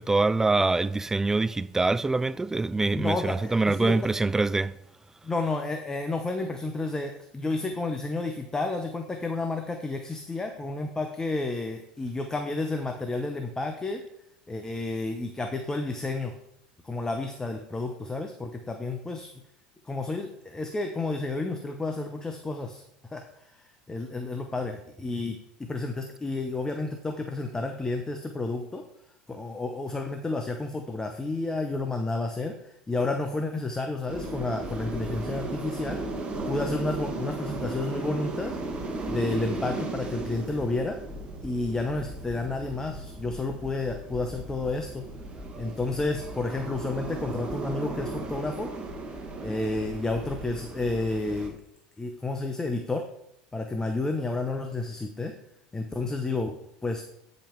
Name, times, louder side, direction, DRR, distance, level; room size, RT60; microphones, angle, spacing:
voice 1, 0.0-4.8, right 3 dB, 10° right, 0.3 m, -24 dB
voice 2, 2.9-4.0 5.2-14.0 14.5-16.3 16.8-19.3 19.8-22.8 23.1-28.8 29.3-38.6 39.1-41.0 41.4-45.0 45.6-48.7 49.4-51.6 52.0-53.1 53.5-55.4 55.7-57.0, left 2 dB, 15° left, 0.9 m, -31 dB
sound 1, 34.1-51.5, right 2 dB, 30° right, 1.6 m, -36 dB
8.8 x 5.2 x 4.6 m
hypercardioid pair, 85°, 4 cm